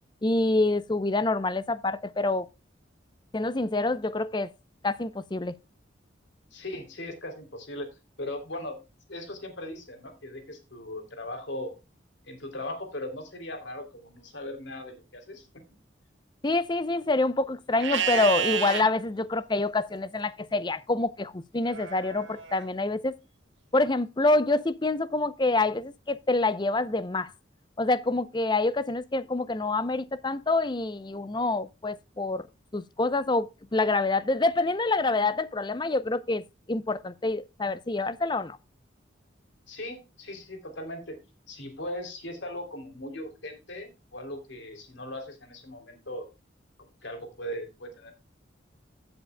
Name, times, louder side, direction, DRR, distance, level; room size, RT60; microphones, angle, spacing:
voice 1, 0.2-2.5 3.3-4.5 4.8-5.5 16.4-23.2 23.7-27.3 27.8-32.5 32.7-38.6, left 2 dB, 25° left, 0.5 m, -26 dB
voice 2, 6.5-7.9 8.2-8.8 9.1-11.8 12.3-15.5 39.7-41.2 41.5-46.3 46.8-48.1, left 1 dB, 75° left, 3.1 m, -38 dB
Livestock farm animals working animals, 17.8-18.8 21.7-22.6, right 7 dB, 75° right, 1.6 m, -30 dB
16.5 x 7.9 x 2.2 m
head